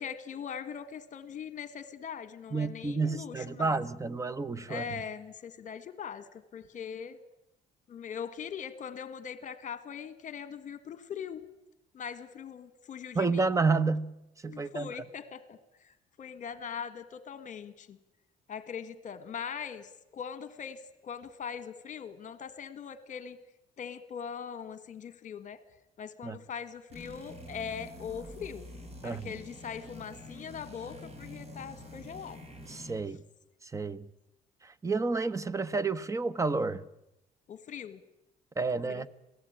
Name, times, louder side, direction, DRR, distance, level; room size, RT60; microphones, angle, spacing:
voice 1, 0.0-3.8 4.7-7.2 7.9-11.5 11.9-13.5 14.5-18.0 18.5-23.4 23.8-25.6 26.0-28.7 29.0-32.5 37.5-38.0 38.9-39.1, left 7 dB, 45° left, 1.7 m, -41 dB
voice 2, 2.5-4.8 13.1-14.1 14.4-14.9 26.2-26.4 29.0-29.3 32.7-33.2 33.7-34.1 34.6-36.8 38.6-39.1, right 4 dB, 20° right, 1.0 m, -30 dB
sound 1, 26.9-33.0, left 3 dB, 25° left, 1.9 m, -49 dB
sound 2, 26.9-33.1, right 3 dB, 40° right, 3.6 m, -51 dB
27.5 x 18.5 x 8.9 m
cardioid pair, 110°, 17 cm